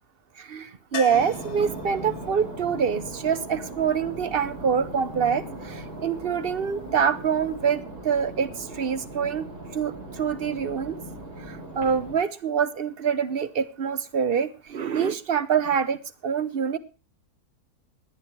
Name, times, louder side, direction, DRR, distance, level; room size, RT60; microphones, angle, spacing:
voice 1, 0.4-7.8 8.0-8.5 8.7-11.0 11.5-16.0 16.2-16.8, right 7 dB, 45° right, 14 dB, 0.8 m, -25 dB
sound 1, 0.9-4.8 7.5-7.6 7.8-7.9, left 6 dB, 75° left, 1.6 m, -42 dB
sound 2, 1.1-12.1, right 1 dB, 75° right, 5.0 m, -39 dB
17.0 x 10.5 x 4.4 m, 0.33 s
omnidirectional pair, 1.7 m